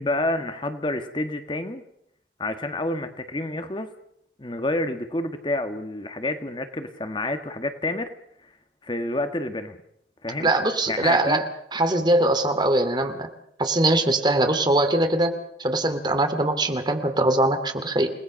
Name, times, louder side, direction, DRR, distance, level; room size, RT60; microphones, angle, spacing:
voice 1, 0.0-1.8 2.4-3.9 4.4-8.1 8.8-9.8 10.2-10.5 10.9-11.4, left 2 dB, 25° left, 8 dB, 1.6 m, -28 dB
voice 2, 10.4-11.4 11.7-13.3 13.6-15.3 15.6-18.1, right 2 dB, 25° right, 8 dB, 2.5 m, -22 dB
29.5 x 19.5 x 6.4 m, 0.72 s
head